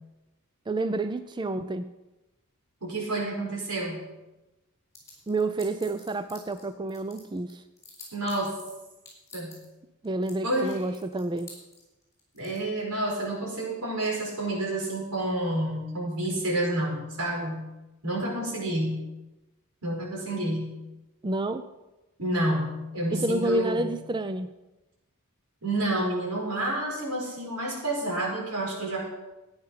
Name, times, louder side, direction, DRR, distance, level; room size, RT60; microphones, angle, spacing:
voice 1, 0.7-1.9 5.3-7.6 10.0-11.5 21.2-21.7 23.1-24.5, right 2 dB, 20° right, 10 dB, 0.4 m, -29 dB
voice 2, 2.8-4.0 8.1-8.6 9.3-9.6 10.4-10.7 12.3-17.6 18.0-19.0 19.8-20.8 22.2-23.9 25.6-29.1, right 1 dB, 85° right, -2 dB, 5.2 m, -29 dB
sound 1, 4.9-6.6 6.9-8.7 9.0-9.7 10.0-10.3 10.7-12.6, left 4 dB, 15° left, 5.2 m, -48 dB
14.0 x 9.7 x 5.8 m, 1.0 s
head